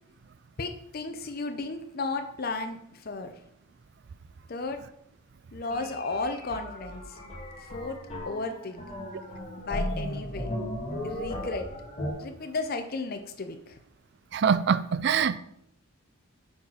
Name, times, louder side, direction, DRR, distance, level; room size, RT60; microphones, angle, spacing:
voice 1, 0.6-3.3 4.5-4.8 5.5-7.2 7.6-8.0 8.3-8.8 9.6-10.5 11.0-11.7 12.2-13.8, left 3 dB, 45° left, 6 dB, 0.6 m, -34 dB
sound 1, 5.7-12.1, left 1 dB, 25° left, 1.8 m, -36 dB
voice 2, 14.3-15.4, right 7 dB, 50° right, 16 dB, 0.4 m, -24 dB
7.0 x 4.1 x 6.2 m, 0.74 s
head